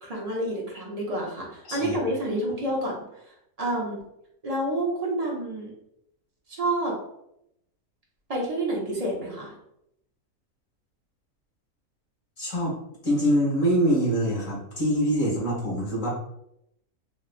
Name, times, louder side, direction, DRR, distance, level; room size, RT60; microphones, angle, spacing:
voice 1, 0.0-4.0 4.4-5.7 6.5-7.0 8.3-9.5, right 1 dB, 45° right, -3 dB, 0.5 m, -29 dB
voice 2, 12.4-12.8 13.0-16.1, equal, 35° left, -5 dB, 1.3 m, -24 dB
3.1 x 3.0 x 2.4 m, 0.80 s
omnidirectional pair, 1.6 m